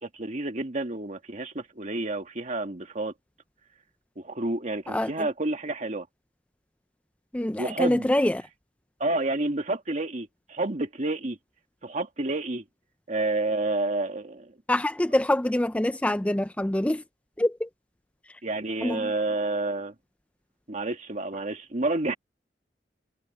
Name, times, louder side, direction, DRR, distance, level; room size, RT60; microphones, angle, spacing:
voice 1, 0.0-3.1 4.2-6.1 7.6-8.1 9.0-11.4 11.8-12.6 13.1-14.6 18.4-19.9 20.7-22.1, right 2 dB, 45° right, 1.9 m, -29 dB
voice 2, 7.3-8.4 14.7-17.0 17.4-17.7 18.8-19.1, left 1 dB, 10° left, 0.4 m, -25 dB
head